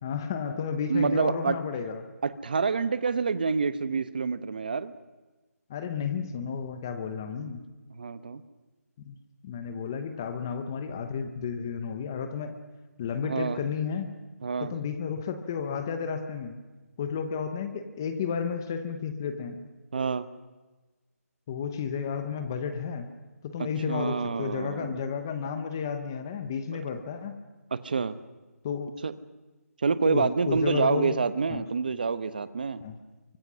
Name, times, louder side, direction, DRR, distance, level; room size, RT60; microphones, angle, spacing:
voice 1, 0.0-2.1 5.7-7.6 9.0-9.2 9.4-12.6 13.0-14.1 14.6-16.6 17.0-19.6 21.5-23.1 23.4-27.3 28.6-28.9 30.0-31.2 31.5-31.6 32.8-33.0, left 6 dB, 15° left, 8 dB, 0.9 m, -32 dB
voice 2, 0.9-1.6 2.2-4.9 7.9-8.4 13.2-13.6 14.4-14.7 19.9-20.3 23.6-25.0 26.7-26.8 27.7-28.2 29.0-29.1 29.8-32.8, right 5 dB, 35° right, 14 dB, 1.1 m, -27 dB
29.0 x 24.5 x 6.2 m, 1.2 s
hypercardioid pair, 175°, 9 cm